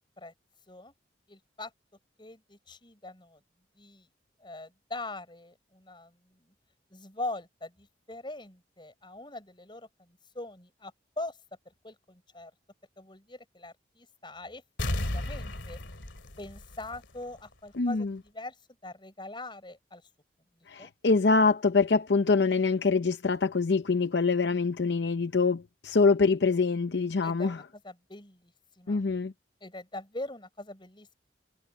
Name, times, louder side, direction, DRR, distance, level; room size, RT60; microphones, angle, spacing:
voice 1, 1.3-1.7 2.2-3.4 3.8-4.1 4.4-6.4 6.9-11.4 11.7-12.5 13.0-14.6 15.0-15.8 16.4-18.6 18.8-20.0 20.8-20.9 27.2-29.0 29.6-31.1, left 2 dB, 25° left, 5.8 m, -42 dB
sound 1, 14.8-17.4 17.7-17.8, left 1 dB, 85° left, 2.5 m, -34 dB
voice 2, 17.8-18.2 20.7-27.6 28.9-29.3, left 4 dB, 70° left, 0.7 m, -25 dB
head